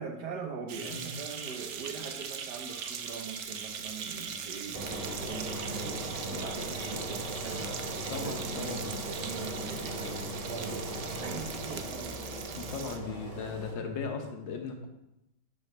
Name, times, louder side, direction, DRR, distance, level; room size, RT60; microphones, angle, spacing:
voice 1, 0.0-12.2, right 5 dB, 65° right, 4 dB, 1.4 m, -42 dB
sound 1, 0.7-13.0, right 7 dB, 90° right, 0.6 m, -40 dB
voice 2, 0.8-1.1 8.1-8.9 12.5-14.9, left 4 dB, 75° left, 4 dB, 1.7 m, -37 dB
Engine, 4.7-13.7, right 1 dB, 35° right, 0.6 m, -38 dB
6.5 x 5.7 x 5.8 m, 0.88 s
omnidirectional pair, 2.0 m